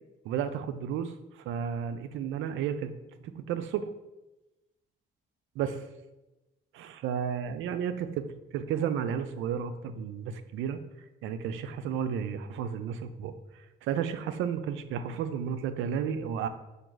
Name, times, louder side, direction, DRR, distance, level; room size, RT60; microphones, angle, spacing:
voice 1, 0.2-2.9 3.2-3.9 5.6-5.8 6.7-8.2 8.5-10.8 11.2-13.3 13.8-16.5, right 8 dB, 85° right, 10 dB, 0.4 m, -32 dB
5.0 x 2.3 x 4.6 m, 1.0 s
cardioid pair, 90°, 20 cm